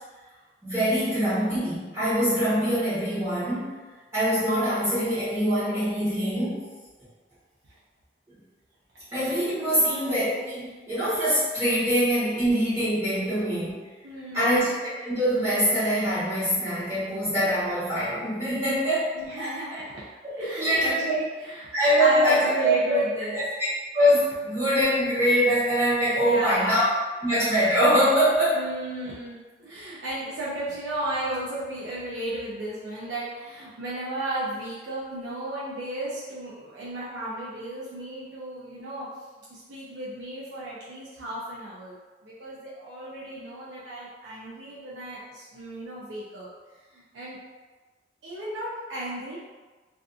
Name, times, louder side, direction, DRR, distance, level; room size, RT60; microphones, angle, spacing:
voice 1, 0.6-3.7 4.1-6.6 9.1-13.8 14.3-19.1 19.4-19.6 20.2-21.1 21.7-22.7 23.3-23.4 23.9-26.9 27.2-28.6, equal, 15° right, -14 dB, 1.0 m, -23 dB
voice 2, 9.6-10.0 14.0-14.7 19.1-20.0 20.4-21.7 22.0-23.4 26.2-26.7 28.5-39.1 39.5-42.0 42.2-46.5 46.9-47.4 48.2-49.4, right 1 dB, 90° right, -8 dB, 0.5 m, -34 dB
2.5 x 2.4 x 2.4 m, 1.3 s
head